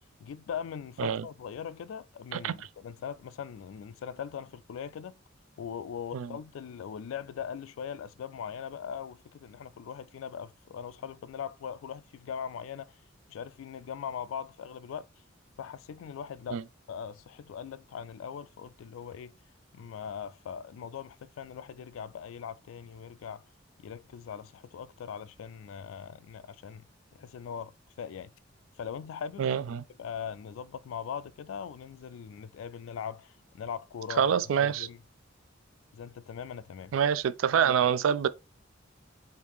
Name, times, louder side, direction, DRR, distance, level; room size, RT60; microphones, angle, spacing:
voice 1, 0.2-5.1 5.6-13.0 13.3-15.1 15.6-16.6 16.9-19.3 19.7-23.4 23.8-26.8 27.1-27.7 28.0-28.3 28.8-29.6 30.0-34.3 34.6-35.0 35.9-36.9, left 7 dB, 80° left, 0.3 m, -40 dB
voice 2, 29.4-29.8 34.2-34.9 36.9-38.3, right 8 dB, 85° right, 0.3 m, -26 dB
3.1 x 2.7 x 3.5 m
head